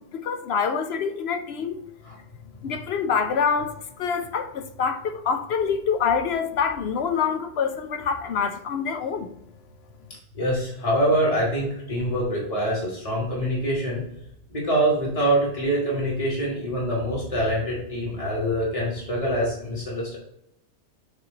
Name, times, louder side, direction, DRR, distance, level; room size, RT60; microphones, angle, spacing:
voice 1, 0.0-1.8 2.6-9.3, left 6 dB, 65° left, 0.8 m, -26 dB
voice 2, 10.3-14.0 14.5-20.2, right 1 dB, 25° left, 2.1 m, -25 dB
8.2 x 3.1 x 3.8 m
omnidirectional pair, 1.3 m